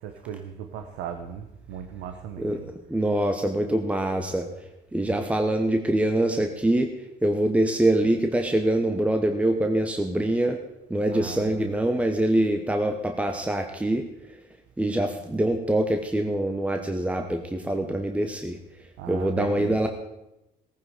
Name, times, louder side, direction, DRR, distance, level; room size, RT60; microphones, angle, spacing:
voice 1, 0.0-2.7 11.1-11.8 19.0-19.9, right 8 dB, 90° right, 7 dB, 1.1 m, -37 dB
voice 2, 2.4-4.5 4.9-6.9 7.2-10.6 10.9-14.0 14.8-18.6 19.1-19.9, right 1 dB, 10° right, 5 dB, 1.0 m, -24 dB
18.0 x 9.8 x 5.0 m, 0.94 s
cardioid pair, 110°, 17 cm